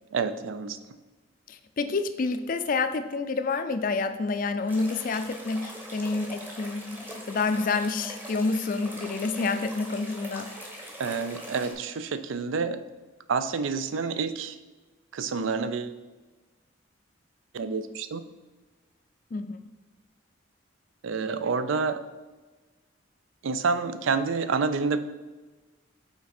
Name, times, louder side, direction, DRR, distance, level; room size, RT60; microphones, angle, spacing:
voice 1, 0.1-0.8 11.0-12.8 13.3-14.6 15.1-15.9 17.5-18.2 21.0-22.0 23.4-25.0, right 4 dB, 80° right, 11 dB, 0.4 m, -28 dB
voice 2, 1.5-10.7 19.3-19.6, left 3 dB, 45° left, 9 dB, 0.4 m, -28 dB
sound 1, 4.7-11.7, equal, 10° right, 0.8 m, -42 dB
5.9 x 4.1 x 4.2 m, 1.3 s
head